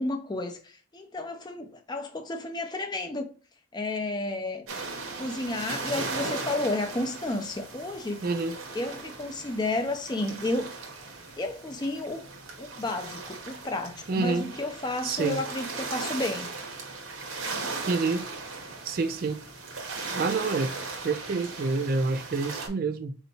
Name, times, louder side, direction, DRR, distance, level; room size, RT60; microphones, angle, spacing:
voice 1, 0.0-3.3 3.7-4.7 5.2-8.2 8.7-10.7 11.4-12.2 12.6-16.5, left 2 dB, 20° left, 0.4 m, -32 dB
sound 1, 4.7-22.7, right 3 dB, 90° right, 1.1 m, -38 dB
voice 2, 8.2-8.6 14.1-14.5 15.0-15.4 17.9-18.3 18.8-19.4 20.1-20.7 21.0-23.2, right 4 dB, 45° right, 0.4 m, -28 dB
4.3 x 2.8 x 2.8 m
head